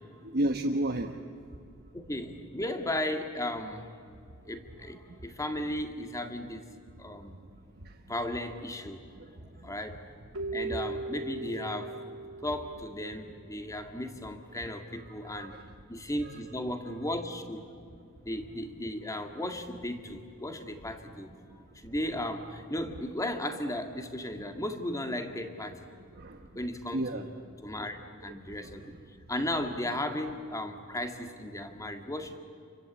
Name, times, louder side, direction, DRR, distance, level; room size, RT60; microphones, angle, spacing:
voice 1, 0.2-1.1 7.8-7.9 14.9-15.6 16.2-16.3 26.1-26.4 26.9-27.2 28.5-28.8, right 1 dB, 50° right, 3 dB, 1.2 m, -32 dB
voice 2, 1.9-3.9 4.5-6.7 7.0-7.4 8.0-9.0 9.6-10.1 10.5-12.0 12.4-15.6 15.9-17.7 18.2-21.3 21.7-25.9 26.5-27.3 27.6-28.9 29.3-32.4, left 1 dB, 15° left, 6 dB, 2.0 m, -35 dB
Keyboard (musical), 10.3-13.6, right 3 dB, 85° right, 2.2 m, -38 dB
29.0 x 24.0 x 8.5 m, 2.4 s
head